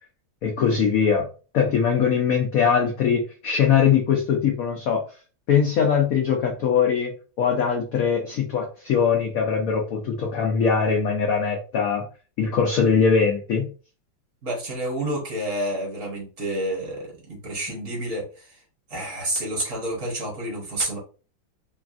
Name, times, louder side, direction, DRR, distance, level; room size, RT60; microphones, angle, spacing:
voice 1, 0.4-1.3 1.5-5.0 5.5-7.1 7.4-12.0 12.4-13.7, left 6 dB, 85° left, 1 dB, 0.7 m, -21 dB
voice 2, 14.4-18.6 18.9-21.0, right 1 dB, 50° right, -2 dB, 1.3 m, -29 dB
3.4 x 2.3 x 2.4 m, 0.36 s
omnidirectional pair, 2.1 m